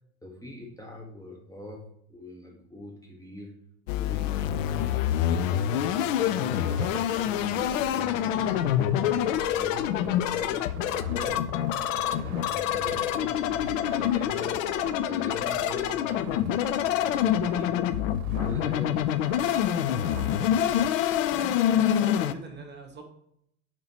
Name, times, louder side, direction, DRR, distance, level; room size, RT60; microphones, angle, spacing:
voice 1, 0.2-3.5 3.9-4.9 5.3-11.5 12.0-14.6 15.1-17.9 18.4-19.1, left 2 dB, 10° left, 0 dB, 1.2 m, -42 dB
sound 1, 3.9-22.3, left 11 dB, 65° left, 0.5 m, -26 dB
sound 2, 6.6-20.9, right 5 dB, 65° right, 0.9 m, -43 dB
voice 2, 21.3-23.0, right 4 dB, 25° right, 3 dB, 1.3 m, -42 dB
5.5 x 4.4 x 4.4 m, 0.71 s
figure-of-eight pair, 75°, 43 cm